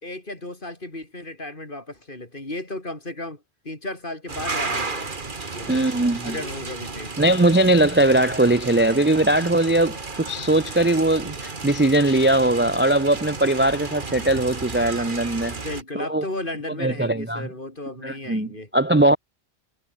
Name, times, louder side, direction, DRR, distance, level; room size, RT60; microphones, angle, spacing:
voice 1, 0.0-5.1 5.6-5.9 6.2-7.3 15.5-18.7, left 2 dB, 50° left, 4.7 m, -34 dB
sound 1, 4.3-15.8, right 3 dB, 50° right, 2.1 m, -33 dB
voice 2, 5.7-6.4 7.2-15.6 16.0-16.2 16.8-17.5 18.0-19.2, right 1 dB, 15° right, 0.4 m, -20 dB
omnidirectional pair, 1.1 m